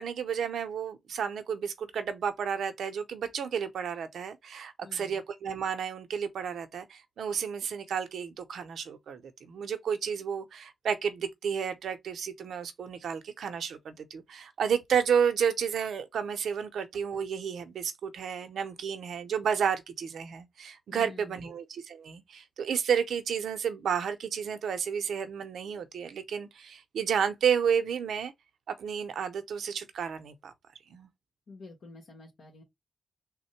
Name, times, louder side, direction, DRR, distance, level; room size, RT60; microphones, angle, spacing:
voice 1, 0.0-28.3 28.7-30.5 30.9-31.1, right 7 dB, 90° right, 0.6 m, -31 dB
voice 2, 4.8-5.2 20.9-21.5 31.5-32.6, left 3 dB, 75° left, 1.3 m, -49 dB
3.5 x 2.1 x 4.3 m
wide cardioid pair, 100°, 0 cm